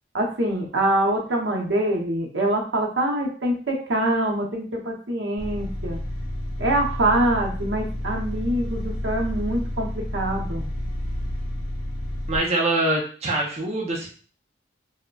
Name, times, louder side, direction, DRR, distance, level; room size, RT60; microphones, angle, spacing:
voice 1, 0.1-6.0 6.6-10.6, right 1 dB, 75° right, 0 dB, 0.7 m, -24 dB
sound 1, 5.4-12.4, left 1 dB, 55° left, 1.0 m, -30 dB
voice 2, 12.3-14.1, right 2 dB, 35° right, -2 dB, 0.5 m, -24 dB
4.7 x 2.1 x 2.3 m, 0.41 s
head